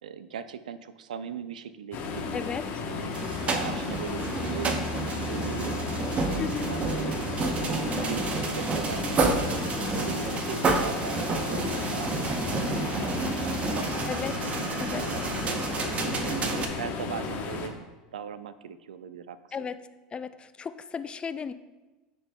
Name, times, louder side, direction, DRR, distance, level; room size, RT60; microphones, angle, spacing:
voice 1, 0.0-2.2 2.9-3.1 3.5-5.8 6.3-7.2 7.7-9.3 9.8-12.9 13.2-13.8 14.5-17.7 18.1-19.4, right 7 dB, 90° right, 13 dB, 0.3 m, -39 dB
sound 1, 1.9-17.7, left 4 dB, 50° left, 1.0 m, -34 dB
voice 2, 2.3-2.8 6.4-6.7 9.0-9.1 14.1-14.4 14.8-15.0 19.5-19.8 20.1-21.5, left 6 dB, 25° left, 12 dB, 0.3 m, -35 dB
sound 2, 3.1-16.7, right 3 dB, 30° right, 0.8 m, -30 dB
10.5 x 4.2 x 2.3 m, 1.2 s
hypercardioid pair, 90°, 4 cm